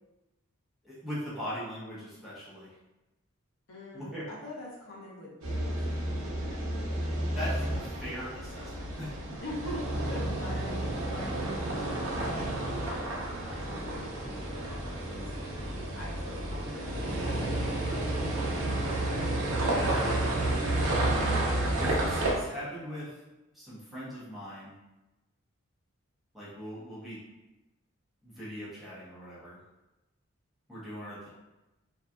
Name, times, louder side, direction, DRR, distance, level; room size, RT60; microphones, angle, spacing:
voice 1, 0.8-2.7 3.9-4.3 7.3-9.1 19.5-20.1 21.7-23.2 23.5-24.7 26.3-27.2 28.2-29.6 30.7-31.3, equal, ahead, -10 dB, 0.7 m, -40 dB
voice 2, 3.7-5.8 9.4-15.2 15.9-17.6, left 1 dB, 70° left, -6 dB, 0.8 m, -44 dB
sound 1, 5.4-22.3, right 1 dB, 75° right, 0.6 m, -31 dB
2.6 x 2.3 x 2.3 m, 1.0 s
head